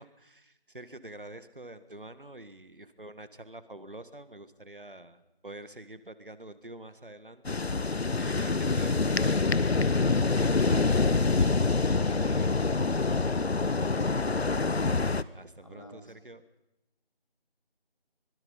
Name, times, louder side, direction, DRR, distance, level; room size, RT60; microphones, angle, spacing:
voice 1, 0.0-12.5 15.3-16.4, right 1 dB, 55° right, 12 dB, 1.7 m, -47 dB
sound 1, 7.4-15.2, left 3 dB, 85° left, 1.0 m, -26 dB
voice 2, 15.6-16.1, left 1 dB, 30° left, 4 dB, 2.5 m, -47 dB
25.0 x 21.0 x 5.6 m, 0.88 s
figure-of-eight pair, 180°, 31 cm